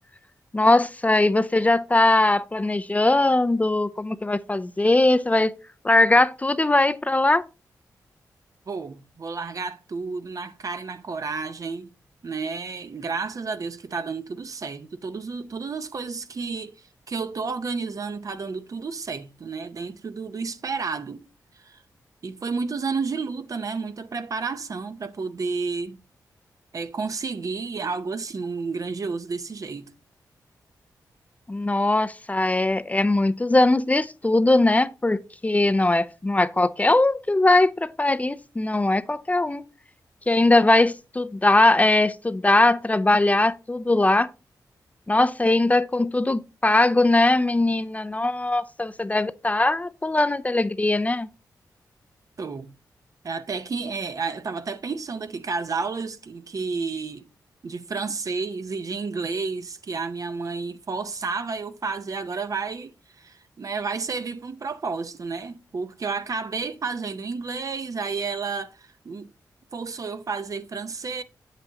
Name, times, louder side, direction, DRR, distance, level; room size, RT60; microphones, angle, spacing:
voice 1, 0.5-5.5 5.8-7.4 31.5-39.7 40.3-44.3 45.1-51.3, left 2 dB, 20° left, 0.5 m, -20 dB
voice 2, 8.7-11.9 12.2-21.2 21.6-21.8 22.2-26.0 26.7-29.9 52.4-52.7 53.2-57.3 57.6-62.9 63.2-69.3 69.7-71.2, right 4 dB, 55° right, 0.7 m, -31 dB
8.0 x 7.8 x 2.9 m
cardioid pair, 60°, 7 cm